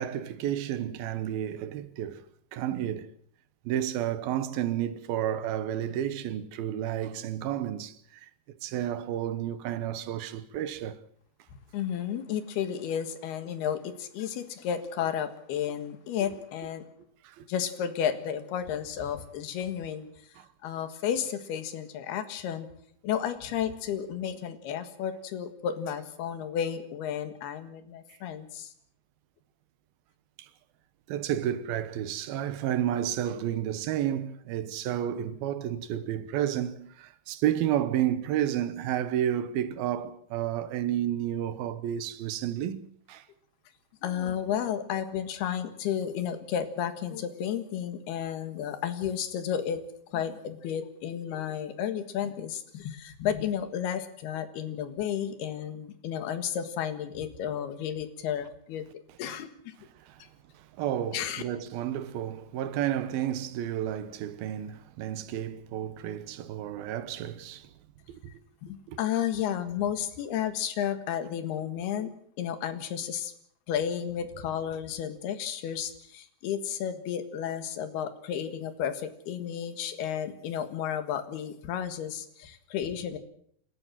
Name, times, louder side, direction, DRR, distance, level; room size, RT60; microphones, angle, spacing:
voice 1, 0.0-2.3 2.5-3.1 3.6-11.0 16.2-16.3 17.2-17.5 20.4-20.5 30.4-30.5 31.1-43.3 60.0-60.2 60.5-67.7 68.1-68.3 68.9-69.0 72.0-72.1, right 11 dB, 75° right, 2.8 m, -31 dB
voice 2, 11.7-16.8 17.5-20.1 20.6-22.7 23.0-28.7 44.0-49.8 50.1-59.7 61.1-61.4 68.6-72.1 72.4-73.3 73.7-83.2, left 9 dB, 80° left, 3.6 m, -32 dB
28.5 x 13.0 x 7.5 m
omnidirectional pair, 4.5 m